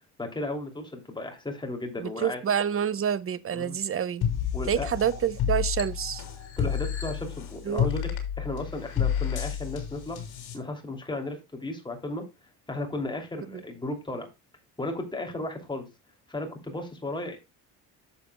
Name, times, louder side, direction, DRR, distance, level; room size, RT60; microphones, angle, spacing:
voice 1, 0.2-2.4 3.5-3.8 4.5-4.9 6.6-8.1 8.4-10.2 10.5-12.2 12.7-14.3 14.8-15.9 16.3-17.4, left 2 dB, 10° left, 2.7 m, -34 dB
voice 2, 2.0-4.2 4.7-6.2 7.6-7.9 13.5-13.6, right 9 dB, 35° right, 0.8 m, -28 dB
sound 1, 4.2-10.6, left 9 dB, 65° left, 3.3 m, -30 dB
11.0 x 7.2 x 2.2 m
cardioid pair, 105°, 41 cm